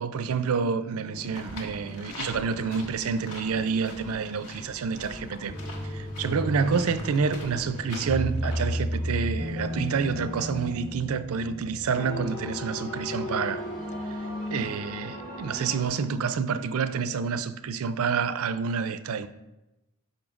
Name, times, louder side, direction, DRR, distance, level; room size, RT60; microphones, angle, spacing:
voice 1, 0.0-5.5 5.8-13.6 14.5-19.3, right 5 dB, 65° right, 0.4 m, -28 dB
sound 1, 0.9-4.3 4.6-15.9, equal, 55° left, 2.8 m, -35 dB
sound 2, 1.2-9.5, left 2 dB, 85° left, 1.4 m, -44 dB
12.0 x 5.6 x 2.5 m
head